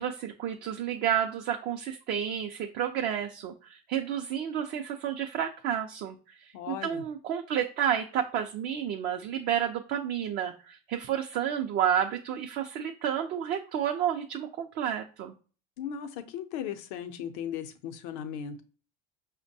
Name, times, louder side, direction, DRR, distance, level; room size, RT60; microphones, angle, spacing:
voice 1, 0.0-15.3, right 9 dB, 55° right, 3 dB, 0.4 m, -31 dB
voice 2, 6.5-7.0 15.8-18.6, left 9 dB, 80° left, 8 dB, 0.6 m, -37 dB
5.1 x 2.1 x 2.7 m, 0.37 s
cardioid pair, 130°, 20 cm